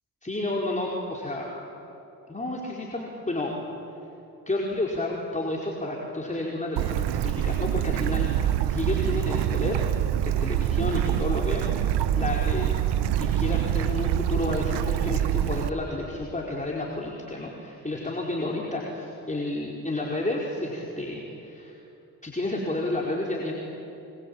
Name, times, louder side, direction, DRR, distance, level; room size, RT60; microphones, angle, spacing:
voice 1, 0.2-1.5 2.3-3.5 4.5-9.8 10.2-11.6 12.1-12.8 13.2-21.8 22.2-23.5, left 2 dB, 20° left, -3 dB, 5.0 m, -31 dB
Bird / Stream, 6.8-15.7, right 11 dB, 85° right, 0.9 m, -25 dB
26.0 x 24.5 x 8.9 m, 3.0 s
supercardioid pair, 50°, 39 cm